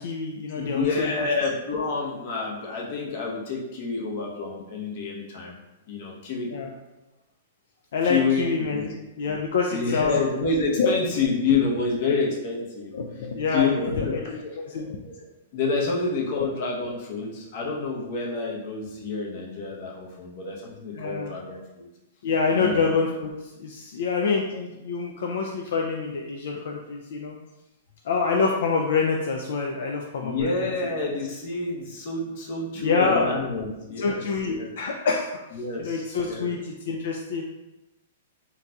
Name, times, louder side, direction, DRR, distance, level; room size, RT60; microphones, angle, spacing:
voice 1, 0.0-1.3 6.5-6.7 7.9-10.2 10.8-10.9 12.9-14.9 16.4-16.5 20.9-21.3 22.2-23.3 23.6-27.4 28.0-30.7 32.8-33.3 34.0-35.3 35.8-37.4, left 4 dB, 70° left, 1 dB, 0.4 m, -26 dB
voice 2, 0.6-5.6 5.8-6.5 8.0-8.9 9.7-12.9 13.5-14.5 15.0-21.9 22.6-22.8 30.2-34.7 35.5-36.5, left 4 dB, 55° left, -2 dB, 0.8 m, -28 dB
3.8 x 2.7 x 2.3 m, 0.99 s
hypercardioid pair, 135°, 0 cm